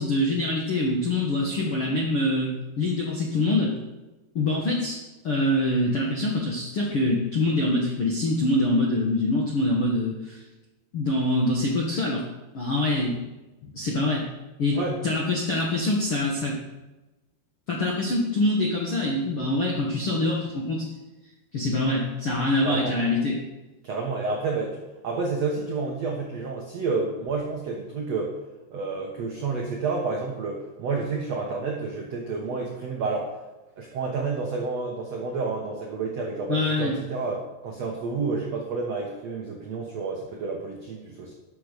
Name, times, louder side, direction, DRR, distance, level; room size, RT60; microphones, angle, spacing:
voice 1, 0.0-2.5 2.8-3.7 4.3-5.0 5.2-10.4 10.9-12.2 12.5-13.2 13.7-14.3 14.6-14.8 15.0-16.6 17.7-20.9 21.5-23.4 36.5-37.0, left 1 dB, 90° left, -2 dB, 1.2 m, -24 dB
voice 2, 22.6-22.9 23.8-28.3 28.7-33.3 33.8-41.3, right 4 dB, 85° right, 0 dB, 1.4 m, -30 dB
12.0 x 6.8 x 6.7 m, 1.1 s
omnidirectional pair, 5.2 m